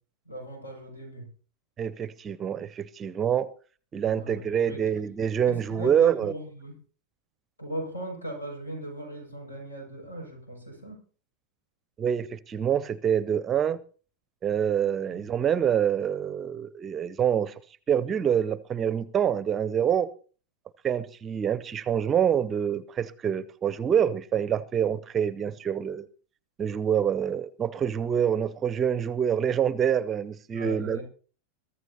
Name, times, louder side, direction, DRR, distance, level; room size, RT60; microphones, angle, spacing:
voice 1, 0.2-1.3 4.0-5.1 5.5-6.8 7.6-11.0 15.1-15.2 30.5-31.0, right 1 dB, 80° left, 3 dB, 6.6 m, -39 dB
voice 2, 1.8-3.5 3.9-6.3 12.0-13.8 14.4-17.5 17.9-20.1 20.8-26.1 26.6-31.0, right 8 dB, 25° right, 19 dB, 0.6 m, -26 dB
23.0 x 14.0 x 2.8 m, 0.41 s
figure-of-eight pair, 90°, 0 cm